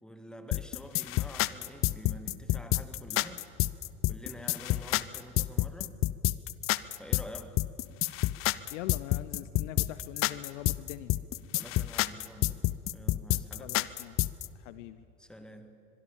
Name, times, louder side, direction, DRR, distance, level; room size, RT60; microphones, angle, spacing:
voice 1, 0.0-3.5 4.1-6.0 7.0-7.7 11.5-13.8 15.2-15.8, equal, ahead, 8 dB, 1.8 m, -48 dB
sound 1, 0.5-14.5, left 17 dB, 30° left, 0.6 m, -29 dB
voice 2, 8.7-11.2 13.6-14.2 14.5-15.0, left 14 dB, 50° left, 15 dB, 0.9 m, -43 dB
24.0 x 22.5 x 7.2 m, 2.4 s
figure-of-eight pair, 80°, 47 cm